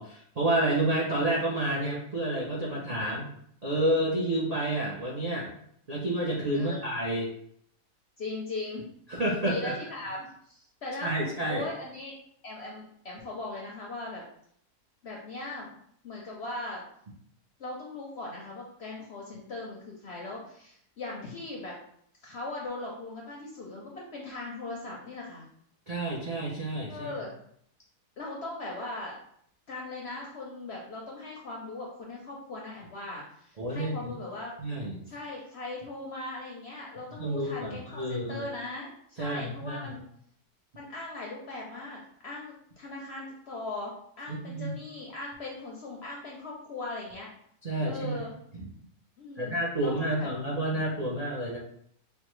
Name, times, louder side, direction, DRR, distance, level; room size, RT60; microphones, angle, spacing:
voice 1, 0.0-3.3 3.6-5.5 5.9-7.3 9.1-9.7 11.0-11.7 25.9-27.2 33.6-34.1 34.6-35.0 37.2-38.5 39.2-39.9 44.3-44.7 47.6-48.2 48.5-48.7 49.4-51.6, right 1 dB, 75° right, -4 dB, 0.3 m, -29 dB
voice 2, 8.2-8.9 9.4-11.1 11.5-12.1 12.4-14.2 15.0-15.7 16.0-16.9 17.6-21.7 22.2-25.5 26.9-27.4 28.2-29.2 29.7-34.5 35.1-40.0 40.7-43.9 44.2-47.3 47.8-48.3 49.2-50.3, left 2 dB, 65° left, -2 dB, 0.6 m, -39 dB
5.3 x 2.1 x 3.1 m, 0.67 s
omnidirectional pair, 1.8 m